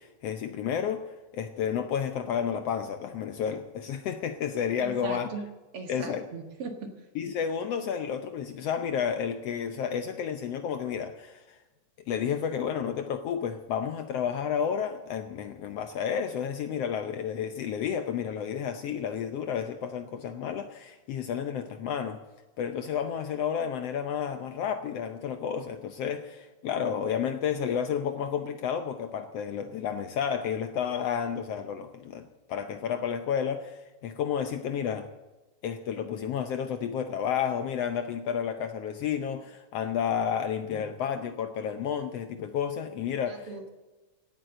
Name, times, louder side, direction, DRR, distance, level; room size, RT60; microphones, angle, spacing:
voice 1, 0.0-5.3 5.9-6.2 7.2-11.6 12.1-22.2 22.6-35.1 35.6-43.5, left 8 dB, 70° left, 8 dB, 1.6 m, -31 dB
voice 2, 4.8-5.4 5.7-6.9 40.7-40.9 43.3-43.7, right 4 dB, 55° right, 4 dB, 2.4 m, -39 dB
17.0 x 9.1 x 7.8 m, 1.2 s
omnidirectional pair, 3.4 m